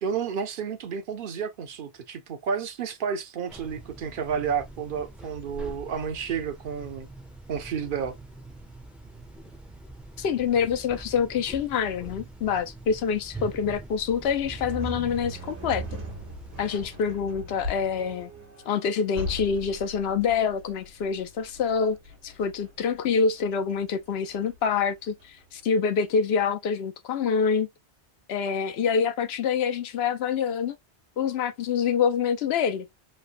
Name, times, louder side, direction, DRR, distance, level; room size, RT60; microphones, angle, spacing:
voice 1, 0.0-7.1 7.5-8.1, right 6 dB, 60° right, 0.8 m, -31 dB
sound 1, 3.5-16.9, right 2 dB, ahead, 0.4 m, -44 dB
voice 2, 10.2-15.8 16.6-18.3 18.7-22.0 22.2-27.7 28.3-30.8 31.2-32.9, left 6 dB, 75° left, 0.8 m, -26 dB
sound 2, 14.4-25.6, equal, 90° right, 1.4 m, -39 dB
3.2 x 2.1 x 2.5 m
omnidirectional pair, 1.1 m